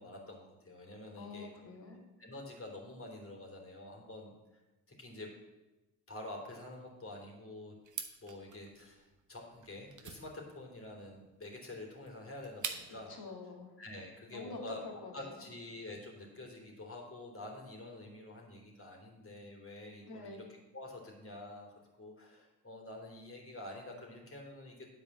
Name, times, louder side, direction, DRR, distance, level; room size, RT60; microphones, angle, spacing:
voice 1, 0.0-1.5 2.2-4.6 4.9-5.3 6.1-7.7 8.2-13.1 13.8-14.8 15.1-20.4 20.7-24.9, left 1 dB, 30° left, -1 dB, 3.3 m, -48 dB
voice 2, 1.2-2.0 13.1-13.7 14.3-15.4 20.0-20.4, left 3 dB, 55° left, 0 dB, 2.4 m, -46 dB
sound 1, 7.8-13.1, right 6 dB, 40° right, 1.3 m, -46 dB
9.6 x 4.8 x 7.4 m, 1.1 s
hypercardioid pair, 45°, 44 cm